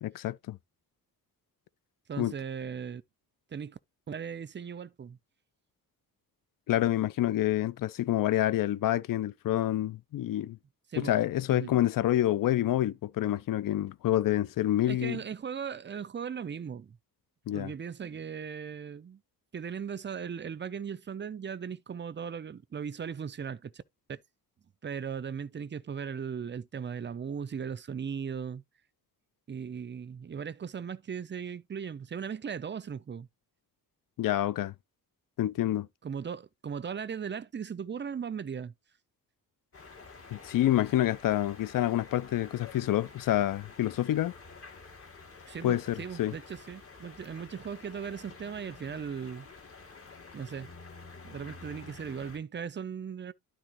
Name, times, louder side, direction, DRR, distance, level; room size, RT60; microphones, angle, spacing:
voice 1, 0.0-0.6 2.2-2.3 6.7-10.6 11.0-15.2 17.5-17.7 34.2-34.7 35.4-35.9 40.3-44.3 45.6-46.3, left 13 dB, 60° left, 0.5 m, -28 dB
voice 2, 2.1-3.0 3.5-3.8 4.1-5.2 10.9-11.1 11.5-11.7 14.9-17.0 17.5-19.2 19.5-23.8 24.1-24.2 24.8-28.6 29.5-33.3 36.0-38.7 45.5-49.5 50.3-50.7 51.2-53.3, right 7 dB, 30° right, 0.5 m, -38 dB
sound 1, 39.7-52.4, left 4 dB, 35° left, 2.5 m, -49 dB
12.0 x 4.0 x 2.9 m
wide cardioid pair, 155°, 37 cm